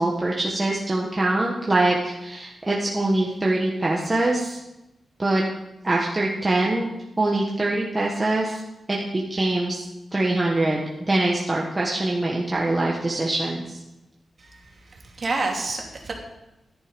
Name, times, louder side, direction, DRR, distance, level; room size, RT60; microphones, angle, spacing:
voice 1, 0.0-4.6 5.2-5.4 5.8-6.9 7.2-8.6 8.9-9.8 10.1-13.8, right 2 dB, 20° right, -3 dB, 1.5 m, -23 dB
voice 2, 15.2-16.1, right 3 dB, 40° right, -1 dB, 2.9 m, -28 dB
13.5 x 10.5 x 5.3 m, 0.96 s
wide cardioid pair, 125°, 0 cm